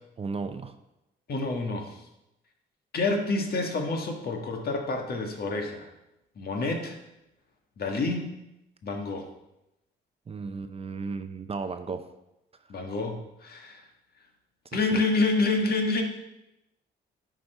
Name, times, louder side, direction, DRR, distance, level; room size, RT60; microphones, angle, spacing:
voice 1, 0.2-0.7 10.3-12.0 14.7-15.0, right 4 dB, 30° right, 8 dB, 0.6 m, -35 dB
voice 2, 1.3-2.0 2.9-5.9 6.4-7.0 7.8-8.3 8.8-9.3 12.7-13.8 14.7-16.0, left 3 dB, 50° left, 3 dB, 1.5 m, -28 dB
9.6 x 5.1 x 4.5 m, 0.90 s
cardioid pair, 90°, 20 cm